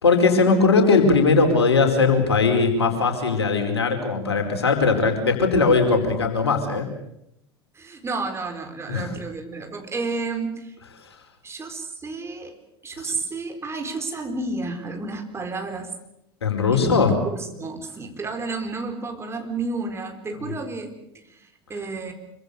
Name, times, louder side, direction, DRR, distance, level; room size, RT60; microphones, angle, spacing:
voice 1, 0.0-6.9 8.9-9.1 13.0-13.1 16.4-17.2, left 4 dB, 75° left, 5 dB, 4.8 m, -19 dB
voice 2, 7.7-10.7 11.4-12.6 12.8-15.9 16.7-22.1, right 3 dB, 20° right, 5 dB, 4.4 m, -31 dB
26.0 x 24.5 x 6.7 m, 0.79 s
figure-of-eight pair, 75°, 14 cm